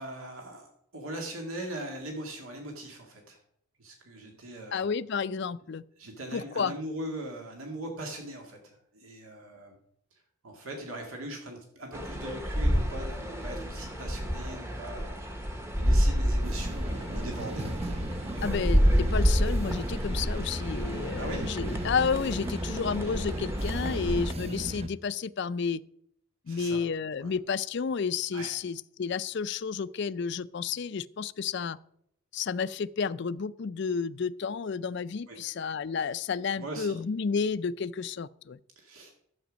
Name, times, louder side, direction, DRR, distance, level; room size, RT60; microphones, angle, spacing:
voice 1, 0.0-3.4 3.8-4.9 6.0-9.8 10.4-15.2 15.8-18.1 18.4-18.6 21.2-21.5 26.5-26.8 27.2-27.3 28.3-28.5 35.3-35.4 36.6-36.9 38.8-39.1, right 1 dB, 80° right, 2.1 m, -40 dB
voice 2, 4.7-5.8 6.3-6.7 18.4-25.8 26.5-31.8 32.3-38.6, left 5 dB, 55° left, 0.4 m, -31 dB
sound 1, 11.9-24.3, equal, 10° right, 0.9 m, -29 dB
sound 2, 16.4-24.9, right 1 dB, 30° right, 0.6 m, -37 dB
12.0 x 7.9 x 5.2 m
head